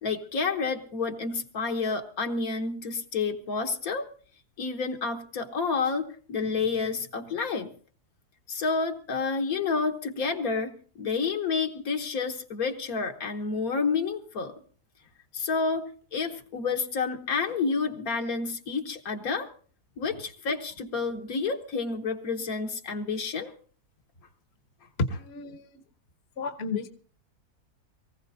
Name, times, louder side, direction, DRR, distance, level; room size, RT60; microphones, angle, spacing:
voice 1, 0.0-4.1 4.6-7.7 8.5-14.5 15.3-15.8 16.1-19.5 20.0-23.5, left 4 dB, 65° left, 4 dB, 1.6 m, -29 dB
voice 2, 25.0-25.8 26.4-26.9, left 3 dB, 45° left, 8 dB, 1.2 m, -31 dB
23.0 x 15.5 x 2.7 m, 0.44 s
omnidirectional pair, 1.6 m